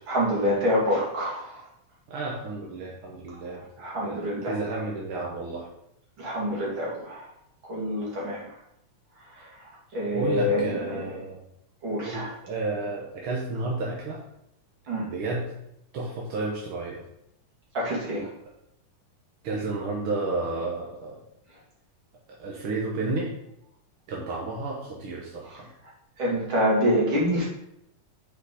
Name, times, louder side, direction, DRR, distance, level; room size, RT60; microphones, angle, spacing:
voice 1, 0.1-1.6 3.8-4.5 6.2-7.2 7.7-8.4 9.9-11.0 11.8-12.3 14.9-15.1 17.7-18.3 26.2-27.4, equal, 40° right, -5 dB, 2.9 m, -26 dB
voice 2, 2.1-3.6 4.0-5.7 10.1-11.4 12.0-14.2 15.0-15.5 15.9-17.0 19.4-21.2 22.4-23.3 24.1-25.7, right 3 dB, 60° right, -3 dB, 1.5 m, -31 dB
7.2 x 5.0 x 4.9 m, 0.78 s
omnidirectional pair, 3.6 m